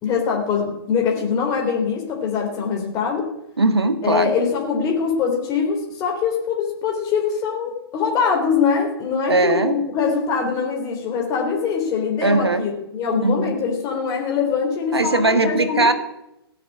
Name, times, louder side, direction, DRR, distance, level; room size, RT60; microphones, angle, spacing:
voice 1, 0.0-3.3 4.0-15.9, left 6 dB, 25° left, 0 dB, 3.7 m, -23 dB
voice 2, 3.6-4.3 9.3-9.8 12.2-12.7 13.2-13.6 14.9-15.9, right 2 dB, 80° right, 9 dB, 1.7 m, -19 dB
17.0 x 9.6 x 8.6 m, 0.86 s
figure-of-eight pair, 115°, 13 cm